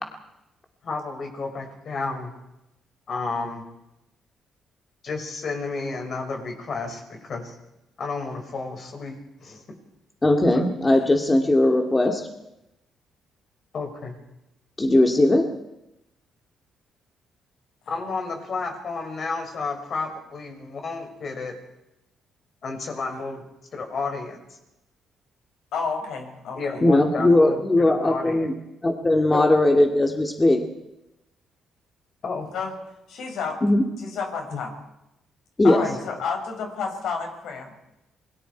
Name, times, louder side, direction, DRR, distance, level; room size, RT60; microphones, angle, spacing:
voice 1, 0.8-2.3 3.1-3.6 5.0-7.6 8.0-9.6 10.5-10.6 13.7-14.2 17.9-21.5 22.6-23.4 23.7-24.4 26.5-27.6 28.0-28.5 29.3-29.5 32.2-32.5 34.5-34.6 35.9-36.0, left 4 dB, 50° left, 3 dB, 6.1 m, -31 dB
voice 2, 10.2-12.3 14.8-15.5 26.8-28.5 28.8-30.6 33.6-33.8 35.6-35.8, left 1 dB, 20° left, 3 dB, 2.4 m, -19 dB
voice 3, 25.7-26.8 32.5-32.7 33.1-33.6 34.0-34.7 35.6-37.7, left 5 dB, 75° left, 3 dB, 5.7 m, -30 dB
28.0 x 22.0 x 4.7 m, 0.91 s
cardioid pair, 90°, 0 cm